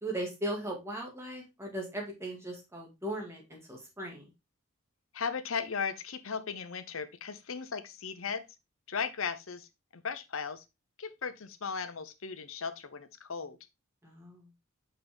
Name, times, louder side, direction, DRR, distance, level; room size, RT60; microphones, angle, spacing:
voice 1, 0.0-4.3 14.0-14.5, right 1 dB, 10° right, 1.9 m, -38 dB
voice 2, 5.1-8.4 8.9-9.7 9.9-10.6 11.0-13.6, left 6 dB, 70° left, 0.8 m, -36 dB
5.8 x 5.6 x 3.4 m
head